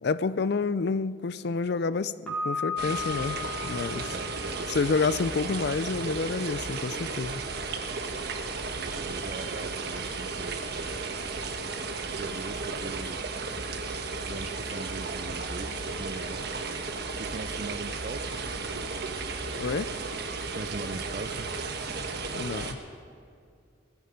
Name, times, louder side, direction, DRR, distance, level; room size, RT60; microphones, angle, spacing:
voice 1, 0.0-4.1 4.7-7.4 19.5-19.9 22.4-22.8, left 4 dB, 60° left, 16 dB, 0.4 m, -29 dB
Piano, 2.3-5.2, left 4 dB, 5° left, 4.0 m, -35 dB
sound 1, 2.8-22.7, right 4 dB, 55° right, 1.3 m, -34 dB
voice 2, 4.1-4.7 8.8-11.0 12.1-13.2 14.2-16.4 17.2-18.5 20.5-21.5, right 3 dB, 40° right, 15 dB, 0.4 m, -41 dB
18.5 x 14.5 x 5.2 m, 2.3 s
head